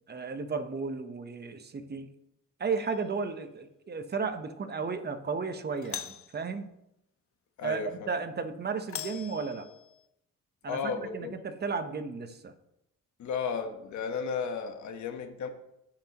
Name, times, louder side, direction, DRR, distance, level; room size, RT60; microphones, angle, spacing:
voice 1, 0.1-2.1 2.6-6.7 7.6-9.7 10.6-12.5, right 5 dB, 35° right, 8 dB, 1.0 m, -34 dB
Doorbell, 2.8-3.3 5.8-6.4 8.9-10.0, left 10 dB, 45° left, 0.6 m, -41 dB
voice 2, 7.6-8.1 10.7-11.3 13.2-15.5, left 6 dB, 70° left, 6 dB, 1.2 m, -34 dB
15.0 x 5.9 x 3.0 m, 0.83 s
cardioid pair, 90°, 30 cm